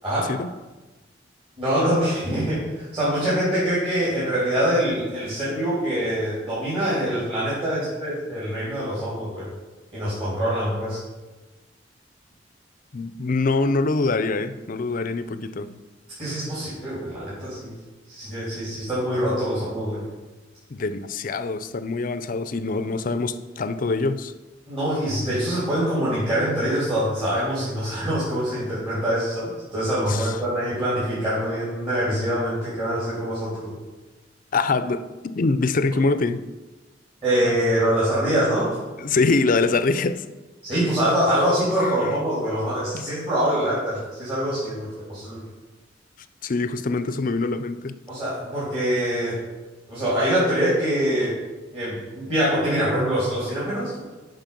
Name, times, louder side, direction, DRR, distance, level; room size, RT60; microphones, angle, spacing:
voice 1, 1.6-9.5 9.9-11.0 16.2-17.7 18.1-20.0 24.7-33.8 37.2-38.7 40.6-45.4 48.1-49.4 49.9-51.3 51.7-53.9, equal, 30° right, -10 dB, 3.3 m, -24 dB
voice 2, 12.9-15.8 20.7-24.3 30.1-30.4 34.5-36.4 39.0-40.2 41.8-42.2 42.9-43.1 46.4-48.0, left 3 dB, 45° left, 12 dB, 0.5 m, -24 dB
9.0 x 5.5 x 5.9 m, 1.2 s
head